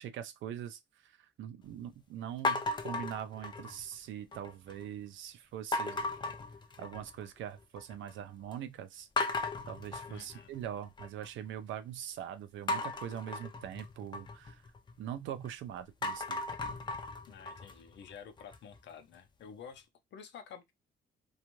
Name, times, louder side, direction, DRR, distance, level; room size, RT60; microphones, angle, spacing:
voice 1, 0.0-6.0 6.8-9.1 9.7-14.6 15.0-16.4, right 10 dB, 75° right, 0.4 m, -42 dB
sound 1, 2.4-3.9 4.3-4.8 5.7-7.2 7.6-8.1 8.5-8.6 9.2-11.3 12.7-15.5 15.9-18.8, left 3 dB, 25° left, 0.4 m, -37 dB
voice 2, 10.1-10.5 17.3-20.7, left 7 dB, 65° left, 0.6 m, -50 dB
2.5 x 2.3 x 2.9 m
cardioid pair, 90°, 20 cm